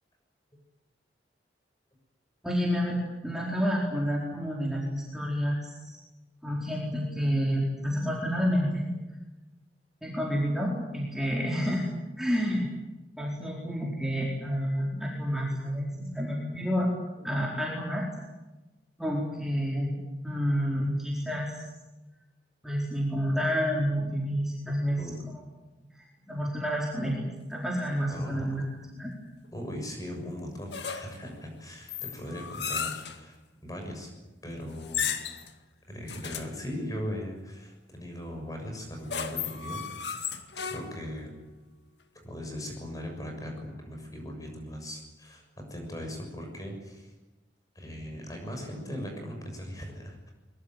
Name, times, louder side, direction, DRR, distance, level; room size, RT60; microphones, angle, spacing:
voice 1, 2.4-3.0 3.2-6.0 6.4-8.9 10.0-11.8 12.2-12.7 13.2-16.9 17.2-18.1 19.0-20.0 20.2-21.7 22.6-25.1 25.9-28.7 29.0-29.1, equal, 5° right, -4 dB, 4.4 m, -29 dB
voice 2, 28.1-28.6 29.5-33.4 33.6-34.1 34.4-35.1 35.9-40.2 40.6-41.3 42.2-47.1 47.7-50.3, equal, 20° left, 3 dB, 6.9 m, -39 dB
sound 1, 30.7-31.3 31.9-33.2 34.8-35.5 36.1-36.6 38.8-41.1, left 7 dB, 75° left, 2.1 m, -34 dB
23.0 x 22.5 x 9.3 m, 1.1 s
head